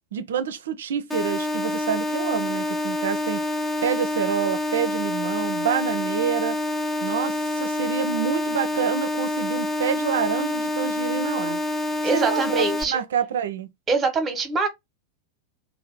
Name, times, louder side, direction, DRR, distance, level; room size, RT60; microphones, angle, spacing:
voice 1, 0.1-3.4 3.8-6.6 7.0-11.6 12.1-13.7, right 8 dB, 60° right, 0.4 m, -27 dB
sound 1, 1.1-12.8, left 1 dB, 5° left, 0.5 m, -27 dB
voice 2, 12.0-13.0 13.9-14.7, right 3 dB, 20° right, 1.0 m, -24 dB
2.7 x 2.1 x 3.4 m
figure-of-eight pair, 90°, 0 cm